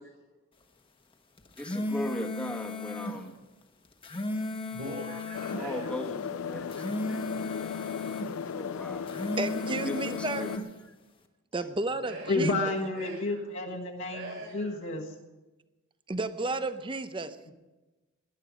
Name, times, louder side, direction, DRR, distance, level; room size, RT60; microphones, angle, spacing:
sound 1, 1.4-3.2 3.8-5.6 6.5-8.3 8.9-10.7, left 2 dB, 25° left, 1.2 m, -35 dB
voice 1, 1.6-3.4 5.5-7.2 8.5-9.1 9.5-10.6 10.9-11.0 11.6-11.7, left 1 dB, 5° left, 3 dB, 1.3 m, -38 dB
voice 2, 4.3-5.9 12.0-12.5 12.9-13.4 14.1-14.7, right 1 dB, 55° right, -5 dB, 4.9 m, -42 dB
sound 2, 5.3-10.6, left 6 dB, 80° left, 0.4 m, -36 dB
voice 3, 9.4-10.5 11.5-12.5 16.1-17.4, right 2 dB, 25° right, 11 dB, 0.7 m, -32 dB
voice 4, 12.3-15.1, left 2 dB, 65° left, -2 dB, 1.6 m, -30 dB
19.0 x 11.0 x 5.1 m, 1.1 s
head